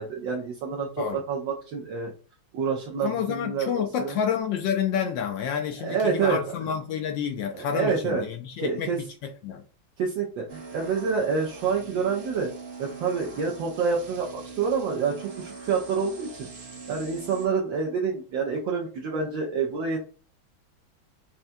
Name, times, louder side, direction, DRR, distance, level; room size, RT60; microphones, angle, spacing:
voice 1, 0.0-2.1 2.5-4.2 5.8-6.4 7.5-8.2 8.6-9.0 10.0-12.5 12.8-16.5 16.9-20.1, right 5 dB, 70° right, 1.4 m, -27 dB
voice 2, 3.0-9.6, left 8 dB, 75° left, 1.1 m, -29 dB
sound 1, 10.5-17.5, right 4 dB, 50° right, 1.4 m, -42 dB
5.6 x 2.3 x 2.6 m
omnidirectional pair, 2.3 m